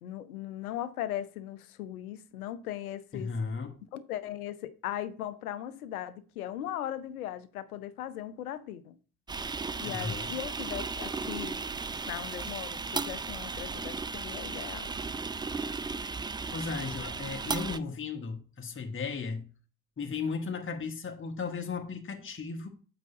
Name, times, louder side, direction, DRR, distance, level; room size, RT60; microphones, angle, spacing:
voice 1, 0.0-3.3 3.9-9.0 9.8-11.6 12.1-14.9, left 12 dB, 85° left, 0.6 m, -38 dB
voice 2, 3.1-3.8 9.8-10.4 16.5-19.5 20.0-22.7, left 4 dB, 30° left, 1.2 m, -35 dB
sound 1, 9.3-17.8, right 4 dB, 10° right, 0.3 m, -35 dB
8.1 x 5.0 x 2.7 m
figure-of-eight pair, 40°, 43 cm